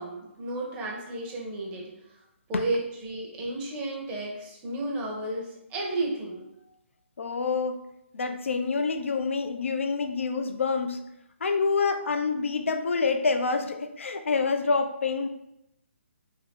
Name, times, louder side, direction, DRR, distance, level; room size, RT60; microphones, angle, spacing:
voice 1, 0.0-1.9 2.5-6.4, right 2 dB, 20° right, -2 dB, 0.7 m, -32 dB
voice 2, 7.2-7.8 8.1-11.0 11.4-15.3, left 4 dB, 75° left, 7 dB, 0.4 m, -27 dB
2.7 x 2.4 x 3.4 m, 0.83 s
figure-of-eight pair, 145°, 7 cm